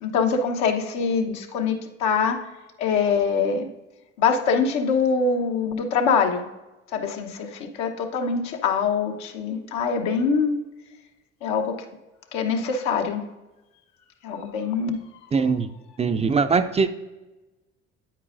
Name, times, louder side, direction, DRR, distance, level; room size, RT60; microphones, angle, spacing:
voice 1, 0.0-2.4 2.8-3.7 4.2-6.5 6.9-10.6 11.4-11.8 12.3-13.2 14.2-15.0, left 5 dB, 70° left, 4 dB, 1.0 m, -24 dB
voice 2, 15.3-15.7 16.0-16.9, right 5 dB, 20° right, 9 dB, 0.5 m, -21 dB
8.8 x 8.7 x 2.5 m, 1.1 s
supercardioid pair, 75°, 29 cm